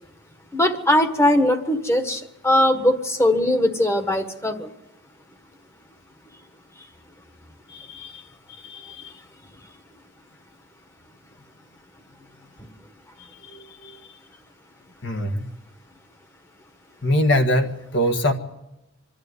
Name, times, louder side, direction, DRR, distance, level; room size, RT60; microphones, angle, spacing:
voice 1, 0.5-4.7 12.6-12.7, left 1 dB, 15° left, 7 dB, 1.5 m, -20 dB
voice 2, 7.7-8.2 8.6-9.1 13.5-13.9 15.0-15.5 17.0-18.3, left 1 dB, 60° left, 6 dB, 1.8 m, -23 dB
25.0 x 12.5 x 9.7 m, 0.98 s
head